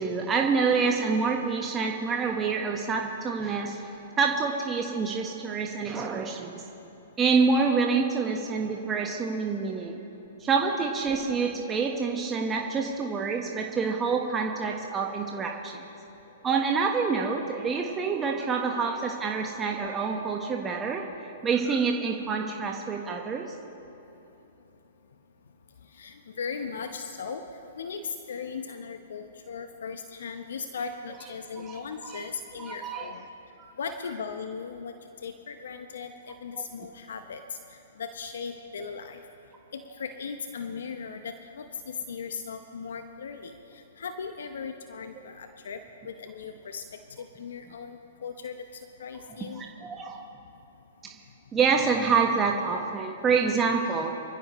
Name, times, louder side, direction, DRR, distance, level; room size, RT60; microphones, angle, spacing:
voice 1, 0.0-3.8 4.2-6.6 7.2-10.0 10.4-15.8 16.4-23.5 31.7-31.8 32.1-32.2 32.6-33.1 33.6-33.7 36.6-36.7 49.5-50.3 51.0-51.1 51.5-54.1, right 5 dB, 20° right, 1 dB, 1.3 m, -27 dB
voice 2, 25.9-27.4 27.8-33.2 33.8-34.9 35.2-37.6 38.0-39.2 39.7-45.8 46.0-46.8 47.1-49.6, left 5 dB, 70° left, 7 dB, 0.9 m, -38 dB
26.0 x 15.0 x 3.2 m, 3.0 s
hypercardioid pair, 120°, 0 cm